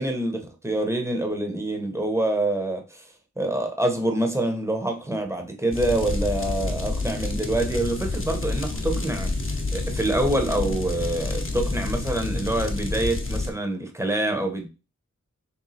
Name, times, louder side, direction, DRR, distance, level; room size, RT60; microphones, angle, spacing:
voice 1, 0.0-3.0 3.4-14.7, right 1 dB, 10° right, 0.8 m, -26 dB
sound 1, 5.7-13.5, left 3 dB, 40° left, 0.8 m, -28 dB
3.3 x 3.0 x 4.1 m
wide cardioid pair, 40°, 31 cm